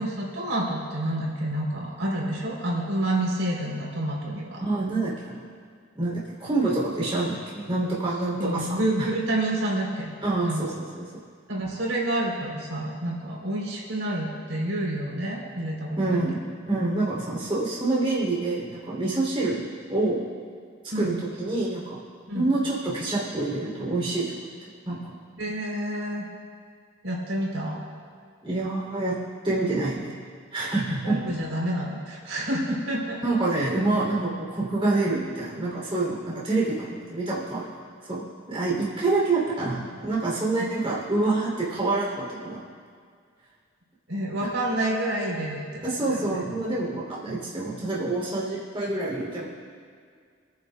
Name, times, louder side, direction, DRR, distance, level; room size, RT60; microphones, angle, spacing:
voice 1, 0.0-4.6 8.4-10.1 10.4-10.6 11.5-16.3 20.9-21.2 22.3-22.5 25.4-26.3 27.0-27.8 31.0-33.2 33.5-33.7 38.7-38.8 44.1-45.6 46.0-46.4, right 1 dB, 80° right, -3 dB, 3.6 m, -28 dB
voice 2, 4.6-5.5 5.9-9.1 10.2-11.0 16.0-16.4 16.7-20.3 20.9-22.0 22.3-24.3 24.8-25.1 28.4-29.2 29.4-30.2 30.5-31.2 33.2-37.7 38.1-42.6 45.8-49.5, right 2 dB, 25° right, -5 dB, 3.1 m, -27 dB
28.5 x 10.5 x 2.3 m, 2.1 s
head